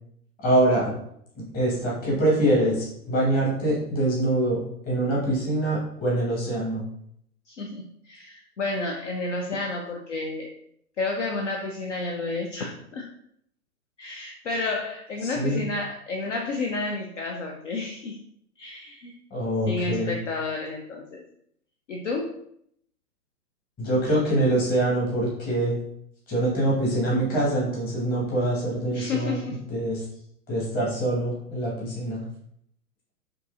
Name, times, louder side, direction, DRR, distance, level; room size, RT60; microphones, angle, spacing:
voice 1, 0.4-0.9 1.3-6.9 15.2-15.6 19.3-20.1 23.8-25.8 26.3-29.4 29.7-30.0 30.5-32.2, right 1 dB, 20° left, -5 dB, 1.3 m, -24 dB
voice 2, 7.5-10.5 11.0-13.1 14.0-18.2 18.6-19.1 19.7-21.2 21.9-22.4 28.9-29.6, left 3 dB, 50° left, 1 dB, 0.6 m, -31 dB
4.5 x 2.8 x 2.5 m, 0.70 s
figure-of-eight pair, 110°, 47 cm